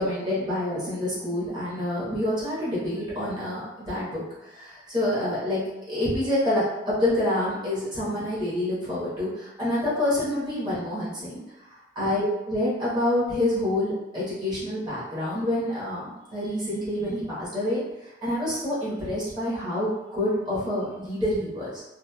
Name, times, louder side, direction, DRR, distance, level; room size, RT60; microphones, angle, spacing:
voice 1, 0.0-11.4 11.7-21.8, left 1 dB, 20° right, -10 dB, 1.1 m, -27 dB
3.0 x 2.4 x 2.2 m, 0.98 s
head